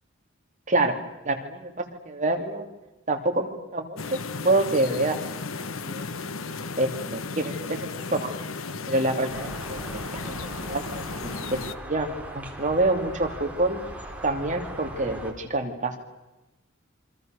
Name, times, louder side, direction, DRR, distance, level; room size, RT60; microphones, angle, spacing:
voice 1, 1.2-2.6 3.1-4.0 4.4-5.3 5.6-6.0 6.8-8.4 8.9-13.8 14.2-15.9, right 2 dB, 35° right, 4 dB, 3.0 m, -27 dB
sound 1, 4.0-11.8, left 4 dB, 80° left, 1.1 m, -35 dB
sound 2, 9.3-15.3, right 1 dB, 5° right, 3.5 m, -39 dB
27.0 x 25.5 x 6.7 m, 1.0 s
head